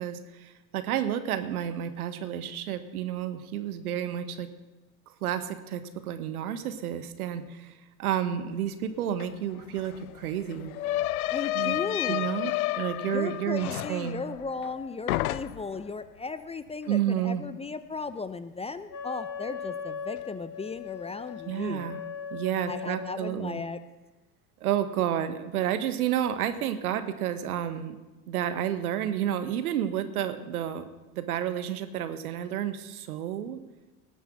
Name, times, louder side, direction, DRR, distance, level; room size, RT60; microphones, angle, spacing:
voice 1, 0.0-4.5 5.2-7.7 8.0-10.8 11.5-11.8 12.1-14.2 16.9-17.4 21.5-22.0 22.3-23.6 24.6-28.0 28.3-30.8 31.1-33.6, right 10 dB, 75° right, 11 dB, 1.2 m, -30 dB
sound 1, 9.2-9.3 9.5-14.8 15.1-15.8, left 16 dB, 70° left, 0.6 m, -31 dB
voice 2, 11.3-12.3 13.1-22.0 22.7-23.8, left 4 dB, 15° left, 13 dB, 0.6 m, -36 dB
Wind instrument woodwind instrument, 18.9-23.4, left 7 dB, 45° left, 1.8 m, -39 dB
18.5 x 7.2 x 6.1 m, 1.1 s
figure-of-eight pair, 70°, 45 cm